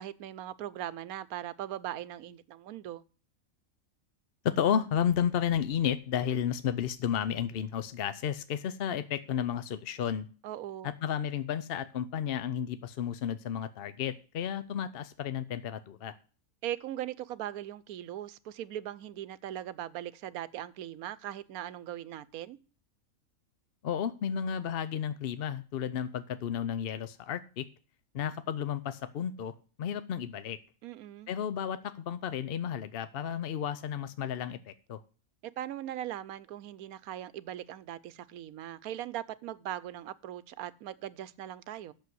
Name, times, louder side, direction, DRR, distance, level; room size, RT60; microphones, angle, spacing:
voice 1, 0.0-3.0 10.4-10.9 16.6-22.6 30.8-31.3 35.4-41.9, right 12 dB, 90° right, 1.1 m, -40 dB
voice 2, 4.4-10.3 10.8-16.2 23.8-27.7 28.1-30.6 31.3-35.0, left 8 dB, 60° left, 0.6 m, -32 dB
8.3 x 6.8 x 7.8 m
omnidirectional pair, 1.5 m